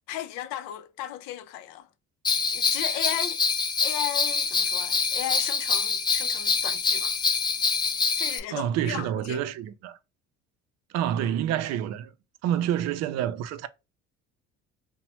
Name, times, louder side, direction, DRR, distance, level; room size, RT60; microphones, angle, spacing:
voice 1, 0.1-1.9 2.5-3.4 3.8-7.2 8.1-9.5, left 12 dB, 85° left, 0.5 m, -35 dB
Bell, 2.2-8.4, left 5 dB, 15° left, 0.3 m, -25 dB
voice 2, 8.5-10.0 10.9-12.1 12.4-13.7, right 10 dB, 60° right, 0.4 m, -28 dB
2.9 x 2.1 x 2.8 m
cardioid pair, 100°, 30 cm